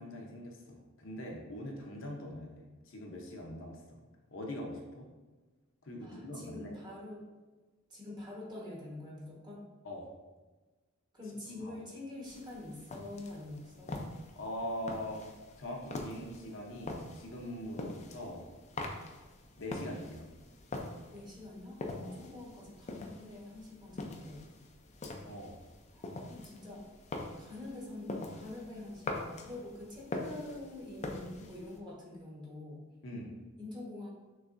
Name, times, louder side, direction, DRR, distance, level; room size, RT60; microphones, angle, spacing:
voice 1, 0.0-4.0 4.3-5.1 5.8-6.7 9.8-10.1 11.5-11.7 14.4-15.2 15.6-18.5 19.6-20.3 22.0-22.2 25.2-25.6 33.0-33.3, left 1 dB, 70° left, 0 dB, 0.8 m, -42 dB
voice 2, 6.0-7.2 7.9-9.7 11.1-13.9 21.1-24.5 25.9-26.9 27.4-32.8 33.6-34.1, left 2 dB, 20° right, -4 dB, 1.3 m, -46 dB
sound 1, 12.2-31.8, left 2 dB, 35° left, 0.5 m, -44 dB
6.3 x 3.2 x 2.6 m, 1.2 s
head